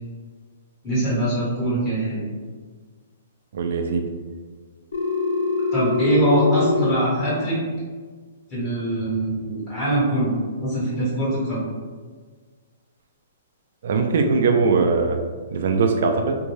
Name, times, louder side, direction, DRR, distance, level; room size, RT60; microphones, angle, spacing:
voice 1, 0.8-2.2 5.7-7.6 8.5-10.3 10.6-11.6, right 1 dB, 15° left, -9 dB, 1.5 m, -22 dB
voice 2, 3.5-4.0 13.8-15.2 15.5-16.4, right 4 dB, 60° right, 4 dB, 0.4 m, -20 dB
Telephone, 4.9-6.9, left 4 dB, 90° left, 0.6 m, -23 dB
2.6 x 2.3 x 3.1 m, 1.5 s
hypercardioid pair, 155°, 0 cm